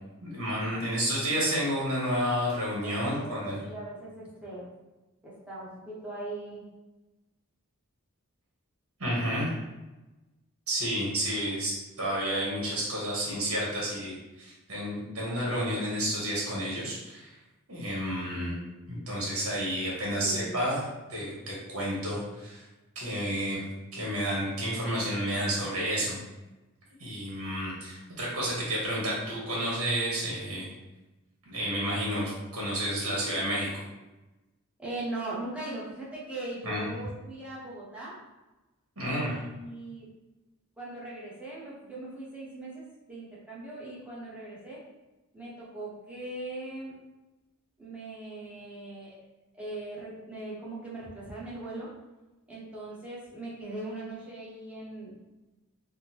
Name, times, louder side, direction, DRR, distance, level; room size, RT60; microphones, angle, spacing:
voice 1, 0.2-3.5 9.0-9.6 10.7-17.3 17.7-18.5 18.9-22.6 22.9-23.7 23.9-26.2 27.0-30.7 31.5-33.7 36.6-36.9 39.0-39.4, equal, 75° right, -5 dB, 1.1 m, -30 dB
voice 2, 2.8-4.7 5.2-6.6 20.1-20.6 34.8-38.1 39.0-40.1 40.8-44.8 45.3-47.0 47.8-49.2 49.5-51.9 52.5-55.1, right 2 dB, 5° right, -7 dB, 0.8 m, -40 dB
3.6 x 2.1 x 2.9 m, 1.1 s
head